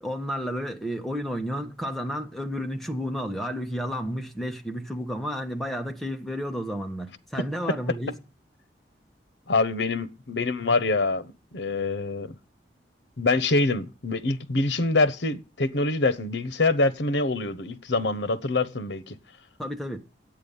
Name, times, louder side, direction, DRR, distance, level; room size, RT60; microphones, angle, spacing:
voice 1, 0.0-8.2 19.6-20.0, equal, ahead, 1.2 m, -31 dB
voice 2, 9.5-12.3 13.2-19.2, left 3 dB, 80° left, 1.0 m, -25 dB
10.5 x 8.7 x 5.5 m
head